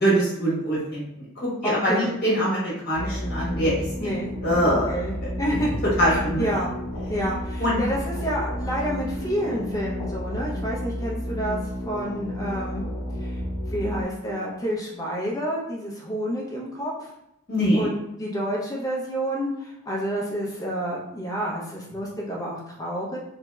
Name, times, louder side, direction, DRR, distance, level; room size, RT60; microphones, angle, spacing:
voice 1, 0.0-4.1 4.4-4.9 6.0-6.5 7.6-7.8 17.5-17.9, equal, 45° left, -6 dB, 1.2 m, -23 dB
voice 2, 1.6-2.1 4.0-4.3 4.6-5.8 6.1-6.7 7.1-12.9 13.2-13.4 13.7-17.1 17.7-17.9 18.2-23.2, equal, 15° left, -4 dB, 0.5 m, -29 dB
sound 1, 2.9-14.0, equal, 85° left, 0.6 m, -31 dB
3.0 x 2.7 x 2.3 m, 0.85 s
head